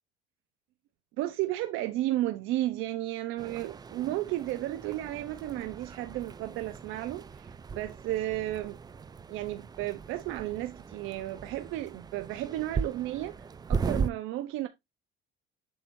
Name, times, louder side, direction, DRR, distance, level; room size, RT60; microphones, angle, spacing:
voice 1, 1.2-8.8 9.3-13.4 13.7-14.7, right 15 dB, 80° right, 0.8 m, -33 dB
sound 1, 3.4-14.1, right 5 dB, 20° right, 0.5 m, -38 dB
7.8 x 6.1 x 2.6 m
cardioid pair, 135°, 20 cm